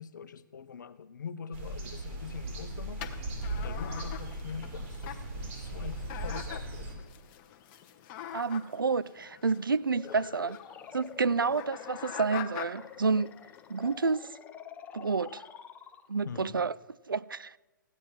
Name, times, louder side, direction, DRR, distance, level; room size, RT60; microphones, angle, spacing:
voice 1, 0.0-3.0 3.6-5.2 5.5-7.0 10.1-10.2 11.4-11.5 16.2-16.6, left 6 dB, 65° left, 0.8 m, -43 dB
sound 1, 1.5-6.9, right 1 dB, 45° right, 4.7 m, -38 dB
sound 2, 3.0-14.0, left 9 dB, 30° left, 1.1 m, -45 dB
voice 2, 8.3-10.6 10.9-13.3 13.7-14.3 14.9-15.4 16.1-16.7 17.1-17.6, right 4 dB, 90° right, 0.4 m, -29 dB
sound 3, 9.9-16.4, left 8 dB, 15° left, 0.6 m, -48 dB
15.0 x 10.5 x 5.7 m
figure-of-eight pair, 130°, 11 cm